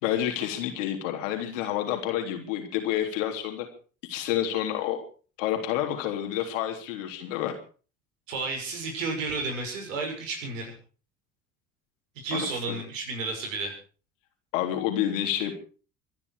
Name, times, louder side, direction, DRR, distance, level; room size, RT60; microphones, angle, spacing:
voice 1, 0.0-3.7 4.1-5.0 5.4-7.6 12.3-12.5 14.5-15.5, left 11 dB, 75° left, 5 dB, 3.6 m, -29 dB
voice 2, 8.3-10.7 12.1-13.8, right 3 dB, 75° right, 3 dB, 6.4 m, -32 dB
25.0 x 11.0 x 4.9 m, 0.39 s
hypercardioid pair, 60°, 38 cm